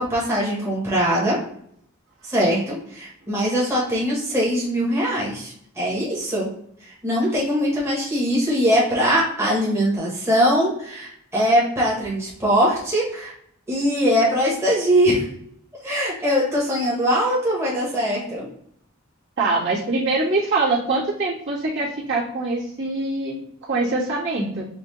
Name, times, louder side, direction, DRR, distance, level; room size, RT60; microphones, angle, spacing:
voice 1, 0.0-1.4 2.2-6.5 6.8-13.3 13.7-15.2 15.8-18.5, equal, 15° right, -6 dB, 1.2 m, -21 dB
voice 2, 19.4-24.7, right 3 dB, 60° right, -7 dB, 1.6 m, -24 dB
5.5 x 2.4 x 3.1 m, 0.67 s
head